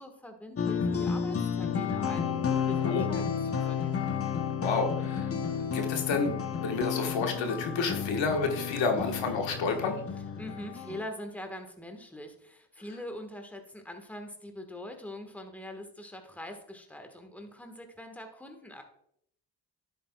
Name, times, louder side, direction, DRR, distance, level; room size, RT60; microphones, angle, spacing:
voice 1, 0.0-3.9 10.4-18.8, left 1 dB, 5° left, 5 dB, 1.3 m, -43 dB
sound 1, 0.6-11.0, left 7 dB, 30° left, 0.8 m, -32 dB
voice 2, 4.6-5.3 5.7-10.0, left 4 dB, 85° left, 4 dB, 1.4 m, -30 dB
10.0 x 8.3 x 2.3 m, 0.71 s
cardioid pair, 70°, 44 cm